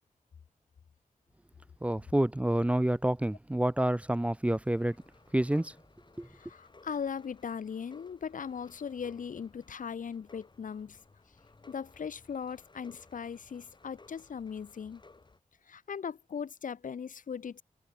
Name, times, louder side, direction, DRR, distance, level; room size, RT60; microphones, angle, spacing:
voice 1, 1.8-5.0 5.3-5.7 6.2-6.3, right 1 dB, 10° right, 0.5 m, -28 dB
sound 1, 4.6-15.4, left 3 dB, 35° left, 2.3 m, -59 dB
voice 2, 6.2-11.0 11.7-15.0 15.6-17.6, left 7 dB, 90° left, 0.9 m, -39 dB
wide cardioid pair, 115°, 13 cm